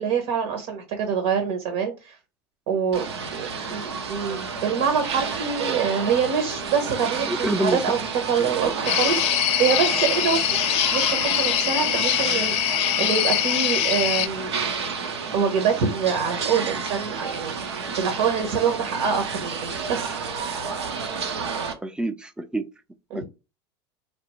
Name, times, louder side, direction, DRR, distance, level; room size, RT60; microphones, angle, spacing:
voice 1, 0.0-2.2 2.7-10.6 10.9-14.5 15.3-20.1 23.1-23.2, right 6 dB, 65° right, 0.9 m, -25 dB
sound 1, 2.9-21.7, right 5 dB, 90° right, 0.7 m, -31 dB
voice 2, 7.3-7.8 8.4-8.7 21.8-22.7 23.1-23.2, right 1 dB, 5° right, 0.4 m, -27 dB
sound 2, 8.9-14.3, left 12 dB, 50° left, 0.4 m, -23 dB
3.4 x 2.3 x 3.0 m
hypercardioid pair, 100°, 14 cm